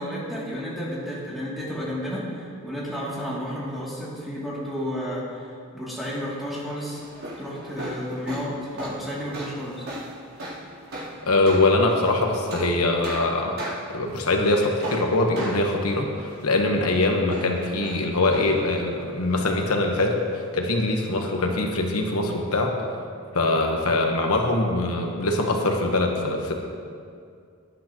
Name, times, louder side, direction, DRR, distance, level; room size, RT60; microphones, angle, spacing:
voice 1, 0.0-7.0 7.4-9.8, equal, ahead, -8 dB, 2.6 m, -32 dB
sound 1, 6.8-21.0, right 1 dB, 80° right, 3.5 m, -39 dB
voice 2, 11.3-13.6 13.9-22.8 23.3-26.6, left 2 dB, 80° left, 2 dB, 1.2 m, -23 dB
18.0 x 10.5 x 3.0 m, 2.3 s
head